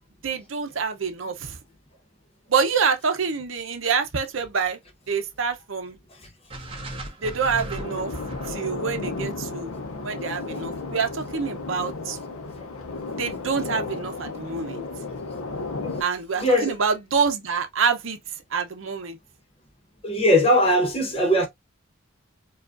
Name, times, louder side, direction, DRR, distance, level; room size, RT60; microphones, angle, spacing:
voice 1, 0.2-1.6 2.5-4.8 5.1-6.0 7.2-8.2 8.5-9.7 10.0-12.2 13.2-14.8 16.0-18.2 18.5-19.2, right 5 dB, 70° right, 0.7 m, -26 dB
sound 1, 6.5-10.7, right 1 dB, 25° right, 0.9 m, -38 dB
sound 2, 7.8-16.0, left 3 dB, 85° left, 0.7 m, -33 dB
voice 2, 16.4-16.7 20.0-21.5, equal, 30° left, 1.0 m, -20 dB
4.8 x 2.4 x 2.5 m
head